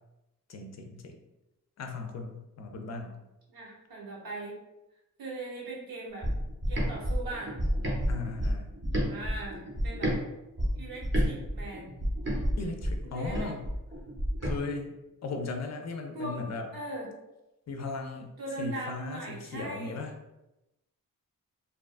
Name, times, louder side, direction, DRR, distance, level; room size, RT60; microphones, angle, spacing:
voice 1, 0.5-1.2 1.8-3.2 8.1-8.7 12.6-13.6 14.4-14.9 15.2-16.7 17.7-18.3 18.6-20.1, left 3 dB, 50° left, 4 dB, 0.4 m, -37 dB
voice 2, 3.5-4.6 5.2-6.3 6.7-7.5 9.1-10.1 10.7-11.9 13.0-13.5 16.1-16.5 16.7-17.2 18.4-20.0, right 2 dB, 80° right, -4 dB, 0.9 m, -39 dB
sound 1, 6.2-10.2 10.6-14.6, equal, 35° right, 0.6 m, -30 dB
2.6 x 2.3 x 2.4 m, 0.95 s
wide cardioid pair, 100°, 34 cm